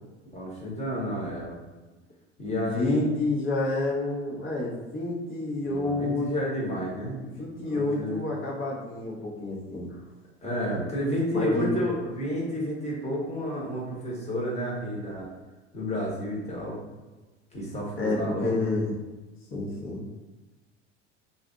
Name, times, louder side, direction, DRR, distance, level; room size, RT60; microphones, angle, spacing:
voice 1, 0.3-1.6 2.4-3.1 5.7-7.2 7.6-8.2 10.4-15.3 15.7-16.8 17.5-18.6, equal, 20° left, -4 dB, 1.4 m, -31 dB
voice 2, 2.4-6.3 6.7-10.0 11.3-11.7 18.0-18.9 19.5-20.1, left 2 dB, 35° left, -3 dB, 1.2 m, -29 dB
3.1 x 2.7 x 3.7 m, 1.2 s
hypercardioid pair, 75°, 35 cm